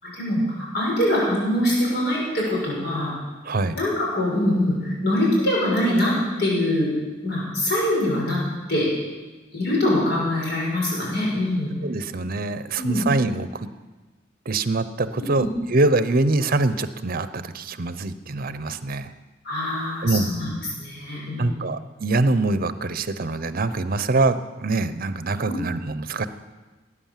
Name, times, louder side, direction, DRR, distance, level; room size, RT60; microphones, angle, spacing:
voice 1, 0.0-3.1 3.7-6.1 6.4-6.9 7.2-8.4 8.7-8.9 9.5-11.7 12.7-13.0 15.1-15.5 19.4-20.5 20.8-21.7 25.4-25.6, left 1 dB, 60° left, -4 dB, 6.1 m, -23 dB
voice 2, 3.4-3.8 11.8-13.7 14.5-19.1 20.0-20.3 21.4-26.3, right 2 dB, 50° right, 13 dB, 0.8 m, -24 dB
17.5 x 9.8 x 7.5 m, 1.2 s
head